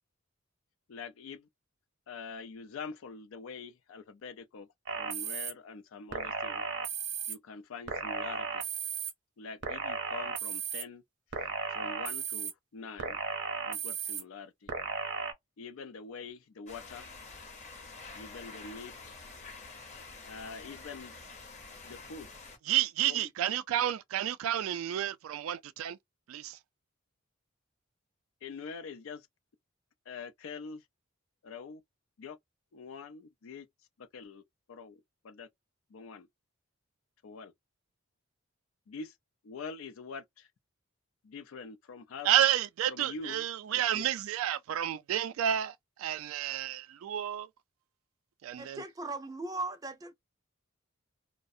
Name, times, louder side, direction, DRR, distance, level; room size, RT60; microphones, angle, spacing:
voice 1, 0.9-1.5 2.1-4.7 4.9-6.6 7.3-8.7 9.4-11.0 11.4-13.2 13.7-14.7 15.6-17.1 18.1-19.2 20.2-21.4 21.8-22.3 23.1-23.3 28.4-29.3 30.1-30.8 31.4-31.8 32.2-32.4 32.7-33.7 34.0-34.4 34.7-35.5 35.9-36.3 37.2-37.5 38.9-39.1 39.4-40.5 41.2-42.3 42.9-44.0, left 5 dB, 75° left, 0.4 m, -45 dB
sound 1, 4.9-5.5 6.1-7.3 7.9-9.1 9.6-10.8 11.3-12.5 13.0-14.2 14.7-15.3, right 6 dB, 60° right, 0.7 m, -35 dB
sound 2, 16.7-22.6, left 4 dB, 35° left, 0.8 m, -48 dB
voice 2, 22.7-26.0 26.3-26.6 42.2-47.5 48.4-48.8, right 11 dB, 85° right, 0.3 m, -30 dB
voice 3, 48.6-50.1, right 2 dB, 20° right, 0.4 m, -38 dB
2.4 x 2.0 x 2.6 m
head